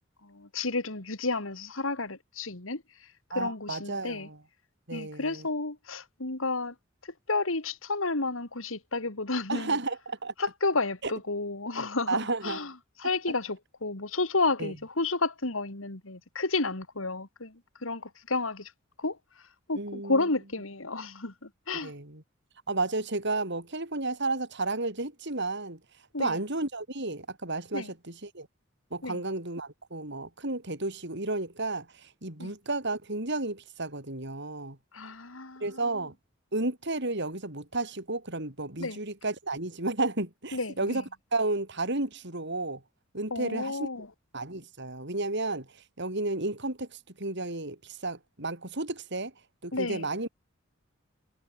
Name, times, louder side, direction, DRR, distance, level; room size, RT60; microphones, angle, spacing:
voice 1, 0.2-3.1 3.3-4.3 4.9-6.7 7.0-9.7 10.4-12.2 12.4-12.7 13.0-18.7 19.0-19.2 19.7-21.9 26.1-26.4 27.7-27.9 29.0-29.2 32.4-32.5 34.9-36.0 38.8-39.0 40.5-41.0 43.3-44.1 49.7-50.1, left 3 dB, 80° left, 2.9 m, -31 dB
voice 2, 3.3-4.4 4.9-5.4 9.5-10.3 11.0-11.1 12.1-12.6 14.6-14.7 19.8-20.2 21.8-22.2 22.7-25.8 26.2-28.5 28.9-34.8 35.6-36.1 36.5-41.0 41.3-42.8 43.1-43.9 44.3-45.7 46.0-46.9 47.2-49.3 49.6-50.3, right 2 dB, 60° right, 6.2 m, -32 dB
head